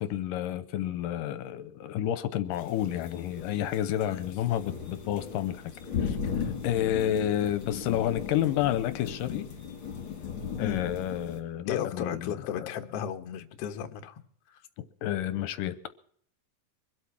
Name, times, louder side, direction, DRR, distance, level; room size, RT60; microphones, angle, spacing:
voice 1, 0.0-5.7 6.0-9.5 10.6-12.7 15.0-15.7, left 11 dB, 80° left, 2.3 m, -30 dB
sound 1, 2.5-11.4, left 7 dB, 40° left, 2.8 m, -37 dB
voice 2, 6.9-7.3 8.2-8.7 10.6-10.8 11.6-14.2 14.5-14.6, left 9 dB, 60° left, 1.8 m, -36 dB
24.0 x 8.4 x 5.9 m
omnidirectional pair, 4.0 m